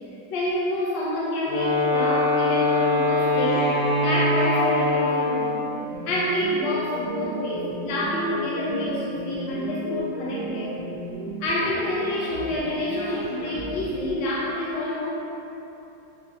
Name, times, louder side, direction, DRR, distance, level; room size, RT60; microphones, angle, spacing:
voice 1, 0.3-5.6 6.0-10.8 11.4-15.1, left 1 dB, 75° left, -5 dB, 1.3 m, -27 dB
Wind instrument woodwind instrument, 1.5-5.8, left 1 dB, 55° left, 1.4 m, -22 dB
sound 1, 5.8-14.1, right 1 dB, 60° right, 0.3 m, -34 dB
7.5 x 2.7 x 2.3 m, 3.0 s
omnidirectional pair, 2.0 m